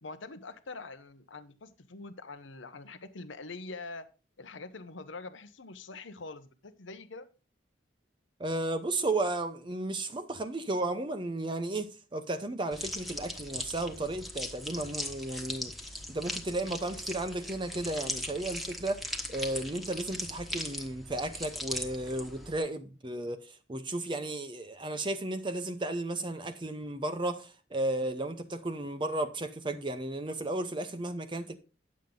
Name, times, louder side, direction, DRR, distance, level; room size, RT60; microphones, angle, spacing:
voice 1, 0.0-4.1 4.4-7.3, left 3 dB, 80° left, 0.9 m, -44 dB
voice 2, 8.4-15.7 16.1-19.0 19.3-31.6, right 2 dB, 25° right, 0.7 m, -34 dB
sound 1, 12.7-22.6, left 1 dB, ahead, 1.2 m, -39 dB
10.5 x 7.3 x 3.8 m
head